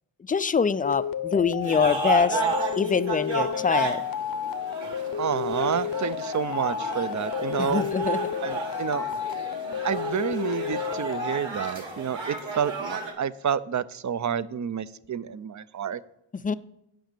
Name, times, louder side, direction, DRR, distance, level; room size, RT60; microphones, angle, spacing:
voice 1, 0.3-2.4 2.8-4.0 7.6-8.2 16.4-16.5, left 5 dB, 20° left, 0.4 m, -24 dB
sound 1, 0.8-11.4, left 8 dB, 45° left, 0.7 m, -32 dB
sound 2, 1.6-13.1, right 3 dB, 65° right, 2.2 m, -33 dB
voice 2, 5.2-7.8 8.4-9.1 9.8-16.0, right 8 dB, 40° right, 0.5 m, -29 dB
9.3 x 5.1 x 6.8 m
cardioid pair, 50°, 49 cm